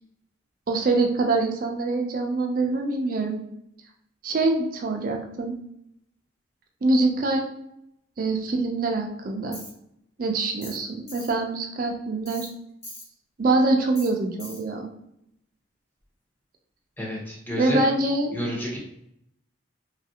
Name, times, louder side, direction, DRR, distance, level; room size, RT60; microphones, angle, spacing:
voice 1, 0.7-3.4 4.2-5.6 6.8-7.5 8.2-9.6 10.2-12.5 13.4-14.9 17.6-18.4, right 2 dB, 45° right, 2 dB, 0.4 m, -24 dB
Tools, 9.5-9.7 10.6-10.8 11.1-11.3 12.3-12.5 12.8-13.1 14.0-14.1 14.4-14.6, left 1 dB, 30° left, 1.1 m, -40 dB
voice 2, 17.0-17.8 18.3-18.8, equal, 10° left, -4 dB, 0.7 m, -30 dB
3.1 x 2.4 x 2.7 m, 0.77 s
head